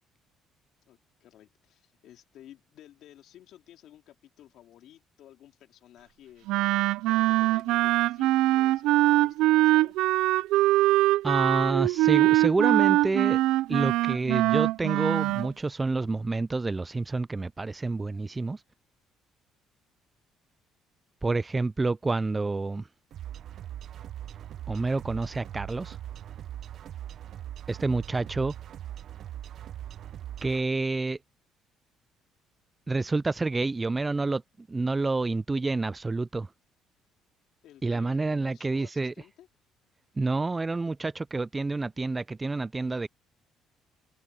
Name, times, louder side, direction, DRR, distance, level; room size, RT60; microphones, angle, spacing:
voice 1, 0.9-6.5 7.1-9.9 37.6-39.5, left 12 dB, 70° left, 4.0 m, -54 dB
Wind instrument woodwind instrument, 6.5-15.5, right 17 dB, 85° right, 0.4 m, -23 dB
voice 2, 11.2-13.4 13.7-18.6 21.2-22.8 24.7-26.0 27.7-28.5 30.4-31.2 32.9-34.4 34.7-36.5 37.8-39.1 40.2-43.1, right 3 dB, 20° right, 0.4 m, -28 dB
sound 1, 23.1-30.6, right 11 dB, 55° right, 0.8 m, -41 dB
cardioid pair, 115°, 0 cm